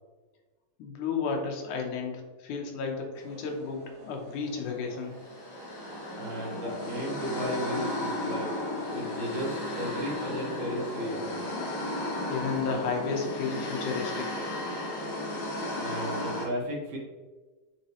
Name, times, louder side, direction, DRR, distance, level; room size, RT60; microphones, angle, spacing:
voice 1, 0.8-5.2 12.3-14.3, left 5 dB, 80° left, 2 dB, 2.4 m, -32 dB
sound 1, 3.1-12.4, right 3 dB, 50° right, 1.6 m, -48 dB
sound 2, 5.2-16.5, left 1 dB, 50° left, 1.4 m, -34 dB
voice 2, 6.2-8.5 8.9-11.2 15.8-17.0, equal, 75° right, -2 dB, 2.9 m, -34 dB
8.6 x 4.0 x 3.0 m, 1.3 s
omnidirectional pair, 3.5 m